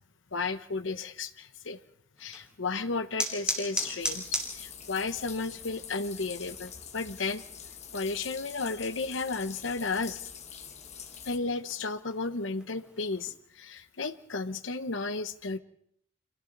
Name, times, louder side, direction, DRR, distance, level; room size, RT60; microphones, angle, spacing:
voice 1, 0.3-1.8 2.2-7.4 7.9-10.2 11.3-15.6, left 3 dB, 70° left, 10 dB, 1.0 m, -33 dB
sound 1, 2.2-13.3, right 1 dB, 5° right, 3.2 m, -40 dB
sound 2, 4.0-11.4, left 7 dB, 35° left, 1.5 m, -45 dB
29.5 x 26.0 x 4.0 m, 0.68 s
head